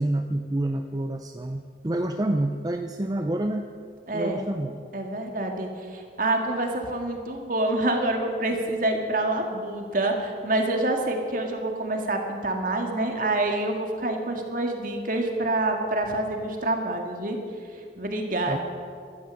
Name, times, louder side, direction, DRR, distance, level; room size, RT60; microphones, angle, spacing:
voice 1, 0.0-3.7 4.1-4.9 18.5-18.6, right 1 dB, 20° right, 6 dB, 0.5 m, -28 dB
voice 2, 4.1-4.5 4.9-17.4 18.0-18.6, right 2 dB, 50° right, 3 dB, 2.0 m, -27 dB
16.0 x 13.0 x 6.4 m, 2.2 s
head